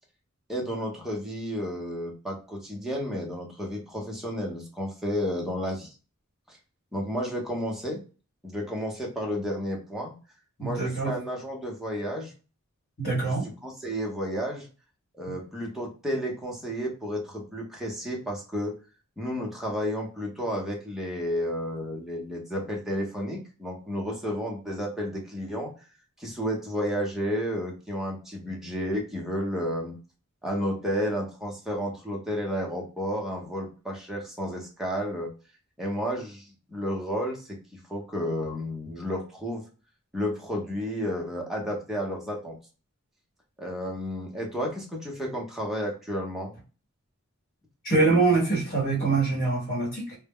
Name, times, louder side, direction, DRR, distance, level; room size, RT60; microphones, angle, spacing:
voice 1, 0.5-5.9 6.5-6.6 6.9-8.0 8.4-10.1 10.6-12.3 13.2-13.3 13.6-14.7 15.1-18.7 19.2-25.7 26.2-30.0 30.4-35.3 35.8-39.6 40.1-42.5 43.6-46.5, equal, ahead, -2 dB, 0.7 m, -32 dB
voice 2, 10.6-11.1 13.0-13.5 15.3-15.4 47.8-50.2, right 3 dB, 45° left, -5 dB, 1.0 m, -24 dB
2.1 x 2.0 x 3.4 m, 0.35 s
head